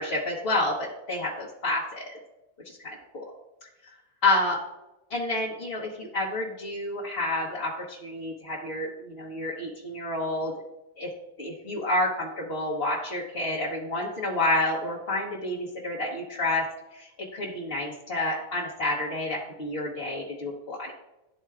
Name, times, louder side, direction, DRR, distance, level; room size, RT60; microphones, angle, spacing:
voice 1, 0.0-2.1 2.6-3.2 4.2-4.6 5.1-10.5 11.0-11.1 11.4-16.6 16.9-20.9, left 2 dB, 75° left, -5 dB, 1.3 m, -29 dB
12.0 x 4.4 x 2.4 m, 0.98 s
omnidirectional pair, 1.0 m